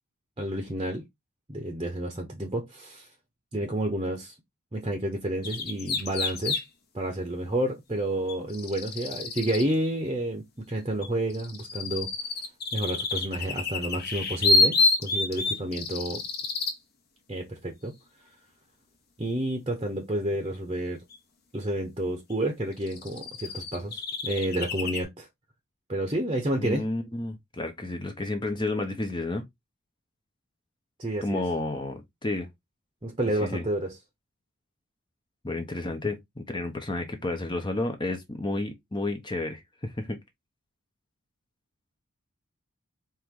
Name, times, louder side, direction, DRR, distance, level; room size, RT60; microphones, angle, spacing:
voice 1, 0.4-1.0 1.5-3.1 3.5-4.3 4.7-6.6 6.9-12.1 12.7-16.2 17.3-17.9 19.2-21.0 21.5-25.3 25.9-26.8 31.0-31.4 33.0-33.9, right 1 dB, 25° right, 0.8 m, -30 dB
sound 1, 5.4-6.6 8.3-9.7 11.0-16.8 21.1-21.2 22.3-22.4 22.8-25.0, left 3 dB, 45° left, 1.1 m, -28 dB
voice 2, 26.6-29.4 31.2-32.5 33.4-33.6 35.4-40.2, left 2 dB, 20° left, 0.7 m, -31 dB
4.7 x 3.0 x 3.6 m
head